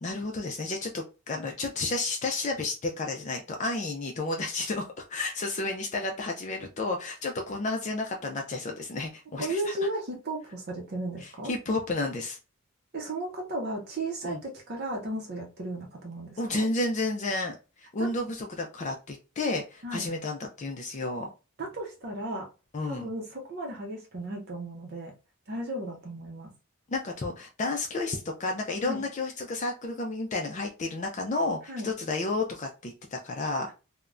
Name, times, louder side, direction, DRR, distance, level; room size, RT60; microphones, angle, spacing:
voice 1, 0.0-9.7 11.2-12.4 14.2-14.4 16.4-21.3 22.7-23.1 26.9-33.7, left 2 dB, 35° left, 2 dB, 0.4 m, -31 dB
voice 2, 9.4-11.5 12.9-16.7 18.0-18.1 19.8-20.1 21.6-22.5 22.8-25.1 25.5-26.5 28.8-29.1 31.7-31.9, right 1 dB, 50° right, 1 dB, 0.6 m, -35 dB
3.3 x 2.1 x 2.4 m, 0.31 s
head